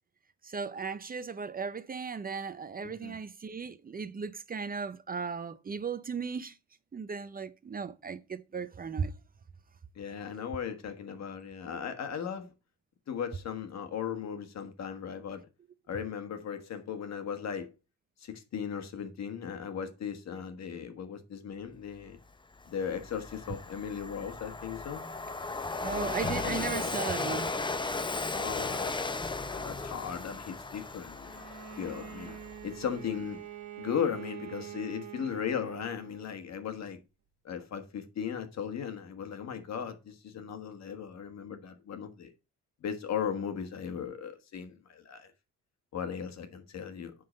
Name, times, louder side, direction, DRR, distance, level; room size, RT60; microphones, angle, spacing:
voice 1, 0.4-6.6 6.9-9.1 25.8-27.5, right 5 dB, 30° right, 0.6 m, -36 dB
voice 2, 2.8-3.2 9.9-12.5 13.1-15.4 15.9-17.7 18.2-22.2 22.7-25.0 25.9-27.0 28.3-31.4 31.8-32.4 32.6-33.4 33.8-37.0 37.4-42.3 42.8-45.3 45.9-47.1, left 7 dB, 60° left, 1.5 m, -37 dB
Train, 22.1-22.2 22.6-33.0, left 3 dB, 15° left, 0.7 m, -36 dB
Strum, 26.2-31.1, left 1 dB, 35° left, 4.3 m, -47 dB
Bowed string instrument, 31.3-36.4, right 11 dB, 60° right, 1.7 m, -45 dB
9.5 x 3.9 x 5.1 m
cardioid pair, 90°, 30 cm